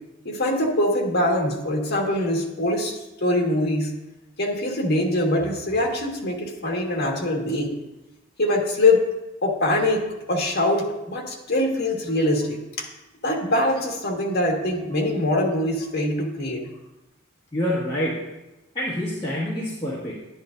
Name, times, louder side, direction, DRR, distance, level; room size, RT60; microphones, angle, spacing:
voice 1, 0.3-3.9 4.4-7.7 8.4-9.1 9.4-12.9 13.2-16.7, left 1 dB, 55° left, 0 dB, 1.7 m, -23 dB
voice 2, 17.5-18.2 18.7-20.2, equal, 25° left, -7 dB, 1.5 m, -27 dB
10.5 x 10.5 x 2.6 m, 1.0 s
head